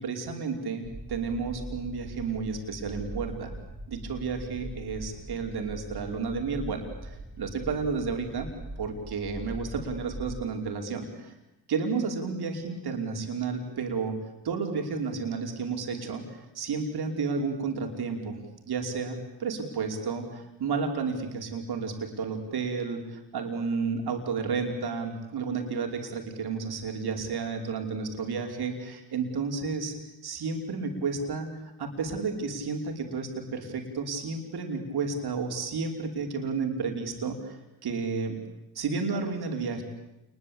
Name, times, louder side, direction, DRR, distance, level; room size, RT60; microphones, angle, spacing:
voice 1, 0.0-3.5 3.9-8.5 8.8-11.3 11.7-14.1 14.4-18.4 18.7-29.9 30.2-31.5 31.8-38.4 38.8-39.8, right 4 dB, 60° right, 3 dB, 5.2 m, -32 dB
sound 1, 0.8-10.5, right 1 dB, 25° right, 6.1 m, -41 dB
28.0 x 22.0 x 8.8 m, 0.90 s
cardioid pair, 75°, 42 cm